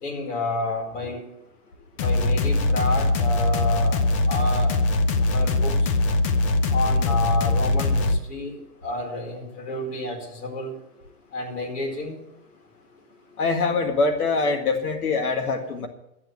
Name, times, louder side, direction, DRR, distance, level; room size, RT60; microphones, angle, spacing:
voice 1, 0.0-1.2 2.0-4.7 5.3-5.9 6.7-10.7 11.3-12.2, left 2 dB, 55° left, 1 dB, 4.7 m, -30 dB
sound 1, 2.0-8.2, left 2 dB, 25° left, 0.5 m, -21 dB
voice 2, 13.4-15.9, left 3 dB, 75° left, 5 dB, 2.1 m, -23 dB
12.0 x 7.8 x 7.9 m, 0.84 s
hypercardioid pair, 140°, 45 cm